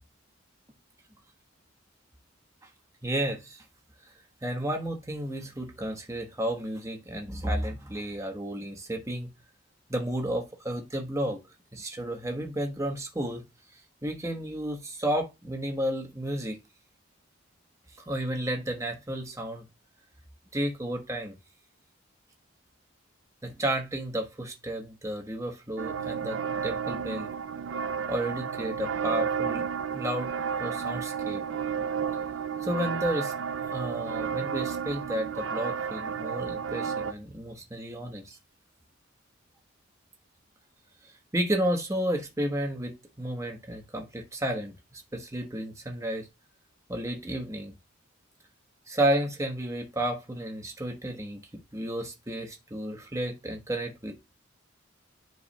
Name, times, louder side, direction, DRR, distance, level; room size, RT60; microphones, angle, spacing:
voice 1, 3.0-3.6 4.4-9.3 9.9-11.4 11.7-13.4 14.0-16.6 18.1-19.6 20.5-21.4 23.4-27.3 28.1-29.6 29.9-31.4 32.6-33.3 33.7-38.4 41.3-46.3 46.9-47.7 48.9-51.4 51.7-54.2, right 1 dB, 15° right, 1.2 m, -32 dB
sound 1, 25.8-37.1, right 7 dB, 75° right, 0.5 m, -32 dB
10.0 x 4.7 x 2.3 m
head